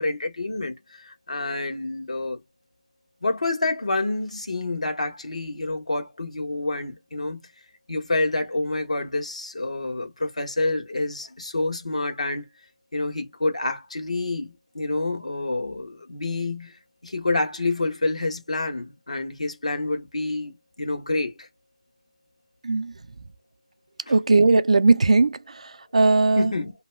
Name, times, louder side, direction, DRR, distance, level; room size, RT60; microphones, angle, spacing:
voice 1, 0.0-2.4 3.2-7.4 7.9-12.5 12.9-16.8 17.0-21.5 26.4-26.7, left 2 dB, 85° left, 1.0 m, -28 dB
voice 2, 24.1-25.4 25.9-26.5, right 3 dB, 75° right, 0.4 m, -18 dB
2.6 x 2.3 x 3.1 m
figure-of-eight pair, 160°, 3 cm